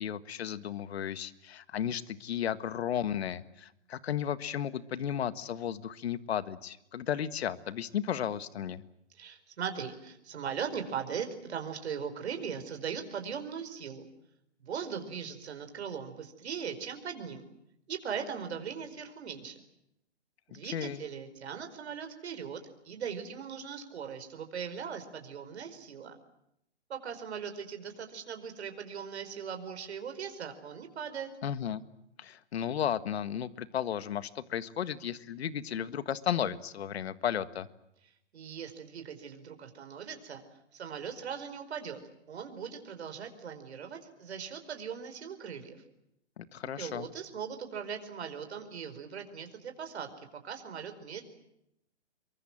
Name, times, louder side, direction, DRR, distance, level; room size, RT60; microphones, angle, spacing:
voice 1, 0.0-8.8 20.5-21.0 31.4-31.8 32.2-37.7 46.4-47.0, left 9 dB, 65° left, 14 dB, 1.6 m, -34 dB
voice 2, 9.1-14.1 14.6-17.4 17.9-19.6 20.5-26.1 26.9-31.3 38.3-40.4 40.7-42.0 42.3-45.8 46.8-50.1 50.4-51.2, right 7 dB, 70° right, 7 dB, 4.9 m, -39 dB
27.0 x 23.5 x 7.6 m, 0.80 s
hypercardioid pair, 155°, 34 cm